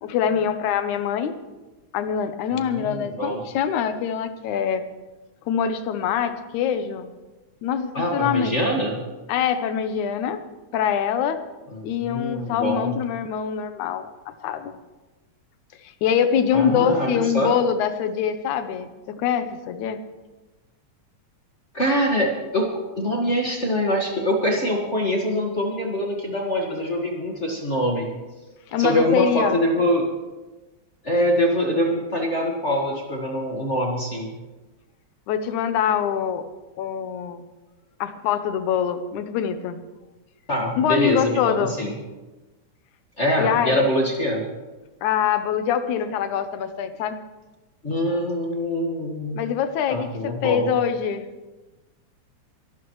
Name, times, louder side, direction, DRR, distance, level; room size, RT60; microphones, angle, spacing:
voice 1, 0.0-1.3 1.9-4.8 5.5-7.1 7.6-8.5 9.3-10.4 10.7-11.4 11.8-14.8 16.0-20.0 28.7-29.6 35.3-36.4 36.8-37.5 38.0-39.8 40.8-41.8 43.4-43.8 45.0-47.2 49.4-51.3, left 8 dB, 75° left, 10 dB, 2.3 m, -24 dB
voice 2, 2.5-3.4 7.9-9.0 11.7-12.9 16.5-17.5 21.7-22.7 23.0-28.0 28.8-30.0 31.0-34.3 40.5-41.9 43.2-44.4 47.8-49.4 49.9-50.7, equal, 30° left, -1 dB, 1.6 m, -24 dB
25.0 x 12.5 x 3.2 m, 1.2 s
omnidirectional pair, 3.5 m